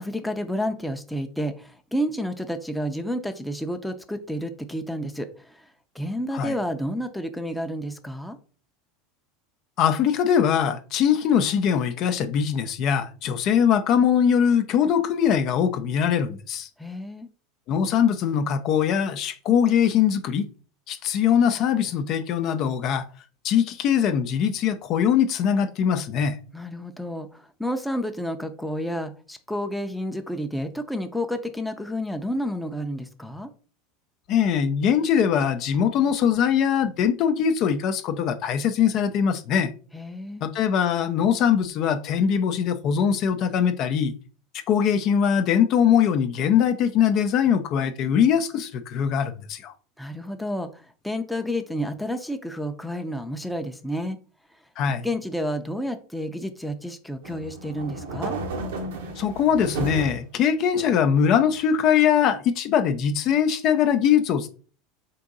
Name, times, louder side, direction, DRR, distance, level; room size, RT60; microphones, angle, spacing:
voice 1, 0.0-5.3 5.9-8.4 16.8-17.3 26.5-33.5 39.9-40.4 50.0-54.2 55.0-58.4, equal, ahead, 0.6 m, -30 dB
voice 2, 9.8-16.7 17.7-20.5 20.9-23.0 23.4-26.4 34.3-39.7 40.4-44.1 44.7-49.7 54.8-55.1 59.2-64.5, left 8 dB, 50° left, 0.4 m, -22 dB
sound 1, 57.2-60.2 60.7-61.6, right 3 dB, 80° right, 0.7 m, -33 dB
3.7 x 2.6 x 3.8 m
hypercardioid pair, 100°, 0 cm